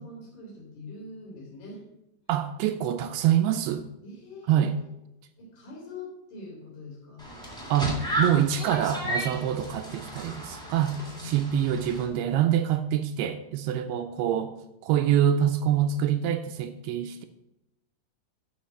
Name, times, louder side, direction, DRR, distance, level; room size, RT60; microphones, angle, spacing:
voice 1, 0.0-1.8 4.0-4.9 5.4-7.3 11.2-11.5, left 2 dB, 70° left, -5 dB, 5.0 m, -43 dB
voice 2, 2.3-3.9 4.5-4.8 7.7-10.9 11.2-14.5 14.8-17.3, right 10 dB, 80° right, 8 dB, 2.4 m, -25 dB
sound 1, 7.2-12.0, right 1 dB, ahead, 1.8 m, -34 dB
11.5 x 4.8 x 6.5 m, 0.90 s
omnidirectional pair, 4.9 m